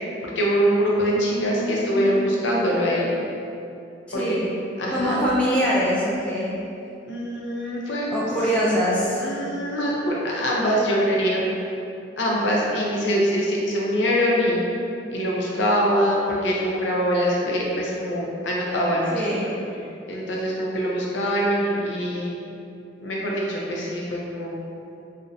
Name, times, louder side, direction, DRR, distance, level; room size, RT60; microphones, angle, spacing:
voice 1, 0.2-3.1 4.1-4.4 4.8-5.2 7.1-8.1 9.2-11.4 12.2-14.6 15.1-19.4 20.1-22.3 23.0-24.6, equal, 75° left, -3 dB, 0.6 m, -23 dB
voice 2, 1.1-2.2 4.1-4.5 4.9-6.5 8.1-9.2 19.1-19.5, equal, 5° left, -9 dB, 0.4 m, -24 dB
2.6 x 2.1 x 3.9 m, 2.6 s
head